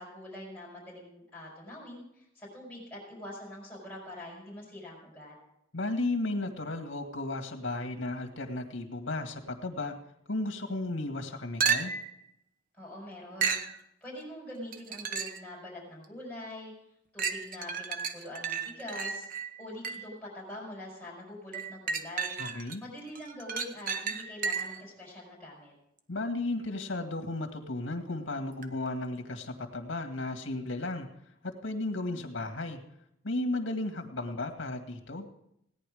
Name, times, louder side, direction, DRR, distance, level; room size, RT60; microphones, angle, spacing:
voice 1, 0.0-5.3 12.7-13.6 14.0-16.7 17.1-19.3 19.6-22.4 22.8-25.7, left 1 dB, 5° left, -5 dB, 5.1 m, -44 dB
voice 2, 5.7-10.0 10.3-11.9 22.4-22.8 26.1-31.1 31.4-32.8 33.2-35.3, left 2 dB, 80° left, 5 dB, 2.0 m, -34 dB
sound 1, 11.6-12.2 13.4-13.7 14.7-15.5 16.0-16.1 17.2-20.2 21.5-22.8 23.2-24.9 28.6-28.7, right 6 dB, 45° right, 1.0 m, -33 dB
17.0 x 10.0 x 5.0 m, 0.77 s
head